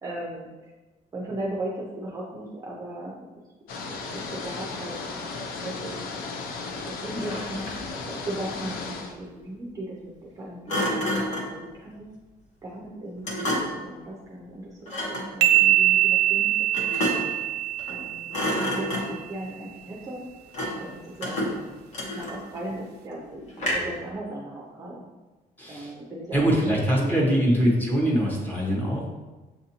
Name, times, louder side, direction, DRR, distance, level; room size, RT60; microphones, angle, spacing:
voice 1, 0.0-0.7 1.1-3.3 4.1-5.0 5.6-6.0 6.8-12.0 12.6-17.0 17.9-18.3 18.6-20.3 20.8-21.4 22.0-25.1 25.7-27.5, right 1 dB, 20° right, -4 dB, 0.5 m, -37 dB
sound 1, 3.7-9.1, left 4 dB, 65° left, 0.5 m, -35 dB
Thump thud, 7.1-7.9 10.7-11.6 13.2-13.9 14.9-15.3 16.7-17.4 17.8-18.0 18.3-19.3 20.5-20.9 21.2-22.6 23.6-24.0, equal, 45° left, 0.9 m, -29 dB
sound 2, 15.4-18.9, right 13 dB, 90° right, 0.4 m, -23 dB
voice 2, 25.6-25.9 26.3-29.0, equal, 10° left, -4 dB, 0.8 m, -23 dB
7.1 x 2.6 x 2.8 m, 1.2 s
cardioid pair, 180°, 17 cm